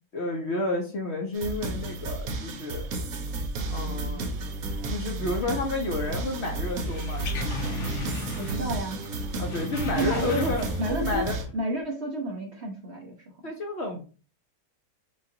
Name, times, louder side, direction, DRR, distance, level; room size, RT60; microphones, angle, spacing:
voice 1, 0.1-2.9 3.7-4.2 4.9-8.5 9.4-10.7 11.0-11.4 13.4-14.0, left 2 dB, 55° left, 2 dB, 0.9 m, -31 dB
sound 1, 1.3-11.4, right 2 dB, 65° right, 1.2 m, -32 dB
voice 2, 3.9-4.2 8.4-9.0 9.9-10.4 10.8-11.2 11.5-13.2, right 1 dB, 50° right, 1 dB, 0.9 m, -31 dB
sound 2, 6.8-8.8 9.0-11.1 11.4-11.5, left 2 dB, 80° left, 1.5 m, -36 dB
6.3 x 2.4 x 2.7 m, 0.36 s
omnidirectional pair, 1.7 m